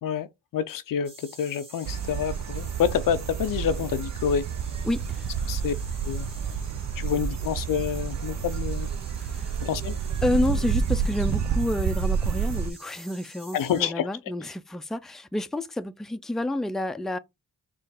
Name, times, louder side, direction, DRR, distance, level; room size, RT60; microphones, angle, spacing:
voice 1, 0.0-4.5 5.5-5.7 6.0-6.3 7.0-8.9 9.6-9.9 13.5-14.1, left 8 dB, 75° left, 0.5 m, -28 dB
sound 1, 1.0-13.8, right 2 dB, 15° right, 1.5 m, -48 dB
sound 2, 1.9-12.7, right 7 dB, 55° right, 0.5 m, -29 dB
voice 2, 4.8-5.3 9.1-9.6 10.2-17.2, left 1 dB, ahead, 0.4 m, -29 dB
4.4 x 2.5 x 3.4 m
cardioid pair, 65°, 34 cm